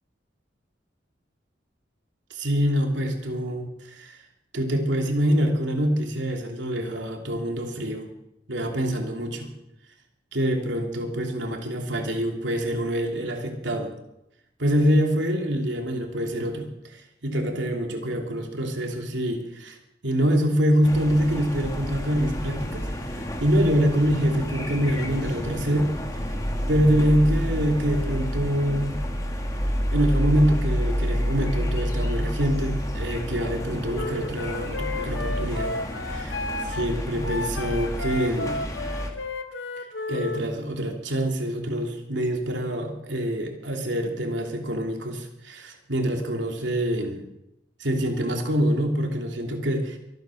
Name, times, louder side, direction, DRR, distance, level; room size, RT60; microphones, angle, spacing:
voice 1, 2.3-4.2 4.5-8.1 8.5-9.5 10.3-13.9 14.6-19.8 20.0-25.9 26.7-29.0 29.9-35.7 36.0-36.4 36.7-38.6 40.1-47.2 47.8-50.0, equal, 75° right, 2 dB, 2.9 m, -25 dB
sound 1, 20.8-39.1, equal, 20° left, 1.9 m, -29 dB
Wind instrument woodwind instrument, 33.9-40.4, left 3 dB, 80° left, 1.4 m, -33 dB
23.5 x 9.5 x 6.5 m, 0.86 s
head